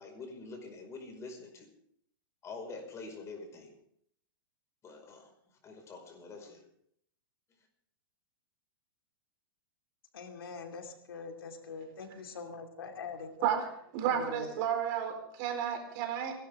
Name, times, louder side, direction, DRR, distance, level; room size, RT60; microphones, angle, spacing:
voice 1, 0.0-1.7 2.4-3.8 4.8-5.3 5.6-6.6, left 3 dB, 25° left, 3 dB, 5.2 m, -46 dB
voice 2, 10.1-13.5 14.0-14.5, left 5 dB, 80° left, 5 dB, 2.7 m, -43 dB
voice 3, 13.9-16.3, right 9 dB, 50° right, 4 dB, 4.3 m, -32 dB
29.0 x 12.0 x 3.7 m, 0.70 s
hypercardioid pair, 120°, 12 cm